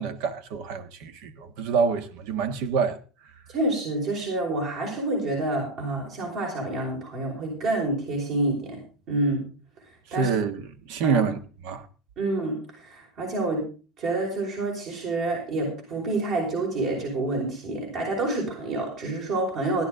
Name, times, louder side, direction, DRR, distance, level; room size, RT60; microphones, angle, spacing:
voice 1, 0.0-3.0 10.1-11.4 11.6-11.9, right 6 dB, 75° right, 1.5 m, -27 dB
voice 2, 3.5-8.8 9.1-9.4 10.1-10.3 11.0-11.3 12.2-13.6 14.0-19.9, right 2 dB, 60° right, 5.5 m, -28 dB
16.5 x 11.0 x 3.9 m
supercardioid pair, 120°, 0 cm